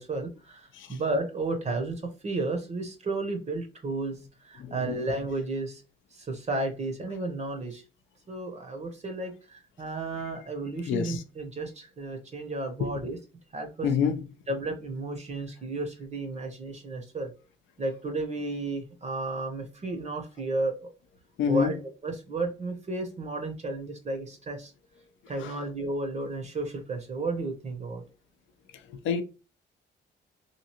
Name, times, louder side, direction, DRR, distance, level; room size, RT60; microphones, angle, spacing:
voice 1, 0.0-5.8 6.1-7.8 8.3-13.2 13.5-13.9 14.5-17.3 17.8-20.9 21.5-21.8 22.0-24.7 25.3-28.0, right 2 dB, 35° right, 0.7 m, -33 dB
voice 2, 4.6-4.9 10.9-11.2 12.8-12.9 13.8-14.2 21.4-21.7 25.4-25.6 28.9-29.2, left 7 dB, 75° left, 0.5 m, -27 dB
2.9 x 2.6 x 2.8 m
cardioid pair, 90°, 20 cm